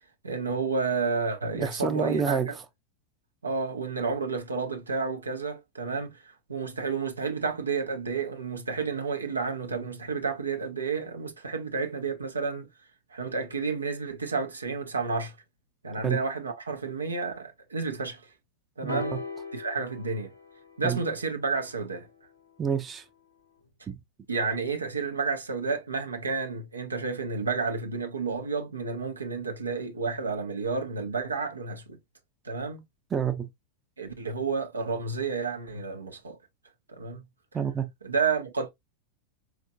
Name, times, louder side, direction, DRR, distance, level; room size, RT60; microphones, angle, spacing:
voice 1, 0.2-2.6 3.4-12.7 13.1-15.4 15.8-18.2 18.8-19.2 19.5-20.3 20.8-22.1 24.3-32.0 32.4-32.8 34.0-36.4 36.9-37.2 38.0-38.7, right 4 dB, 75° right, 0.6 m, -31 dB
voice 2, 1.6-2.6 16.0-16.2 18.8-19.2 20.8-21.0 22.6-23.0 23.9-24.0 33.1-33.5 37.5-37.9, right 6 dB, 20° right, 0.5 m, -28 dB
sound 1, 18.9-22.7 23.6-23.7, left 4 dB, 85° left, 0.7 m, -40 dB
4.3 x 2.4 x 2.5 m
figure-of-eight pair, 90°, 0 cm